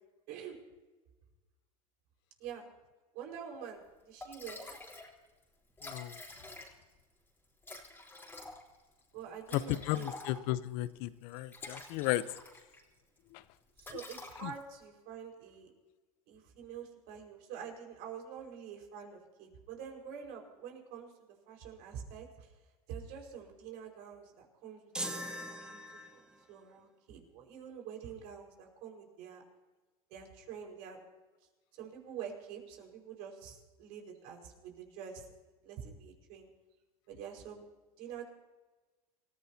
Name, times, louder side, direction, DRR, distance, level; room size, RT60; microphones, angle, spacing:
voice 1, 0.3-0.6 2.4-2.7 3.1-4.8 9.1-10.1 13.8-15.7 16.3-21.1 21.5-22.5 22.9-25.8 26.1-29.4 30.1-31.0 31.7-35.3 35.6-36.5 37.1-37.7 38.0-38.3, right 8 dB, 60° right, 1 dB, 5.1 m, -47 dB
Liquid, 3.8-3.9 4.2-5.1 5.4-5.5 5.7-7.0 7.6-10.7 11.3-12.8 13.2-13.4 13.8-14.8, left 2 dB, 10° left, 3.9 m, -48 dB
voice 2, 5.8-6.2 9.5-12.2 13.3-13.4 14.4-14.5, left 16 dB, 60° left, 16 dB, 0.8 m, -34 dB
sound 1, 24.9-26.4, equal, 5° right, 1.8 m, -41 dB
28.0 x 15.5 x 2.8 m, 1.2 s
hypercardioid pair, 105°, 18 cm